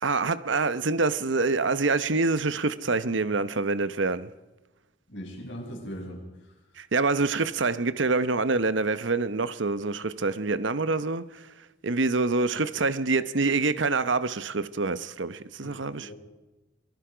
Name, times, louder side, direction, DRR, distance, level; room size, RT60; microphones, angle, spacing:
voice 1, 0.0-4.3 6.8-16.1, right 3 dB, 70° right, 1.0 m, -26 dB
voice 2, 5.1-6.2 15.6-15.8 16.0-16.2, equal, 65° left, 6.4 m, -39 dB
27.5 x 21.5 x 5.1 m
head